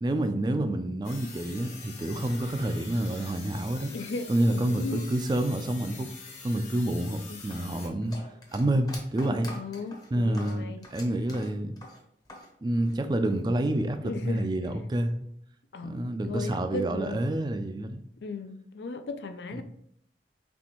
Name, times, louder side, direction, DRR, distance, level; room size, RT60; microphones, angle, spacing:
voice 1, 0.0-3.9 4.3-6.1 6.4-8.2 8.5-9.5 10.1-11.7 12.6-15.2 15.8-18.0 19.5-19.6, right 1 dB, 25° right, 0.3 m, -28 dB
sound 1, 1.0-7.9, left 4 dB, 40° left, 1.0 m, -45 dB
voice 2, 3.9-5.1 7.3-7.4 9.5-10.9 14.0-14.5 15.7-16.0 16.3-17.2 18.2-19.6, left 3 dB, 80° left, 0.4 m, -36 dB
sound 2, 7.4-12.5 12.8-13.6, left 2 dB, 20° left, 0.7 m, -46 dB
4.2 x 3.2 x 3.0 m
head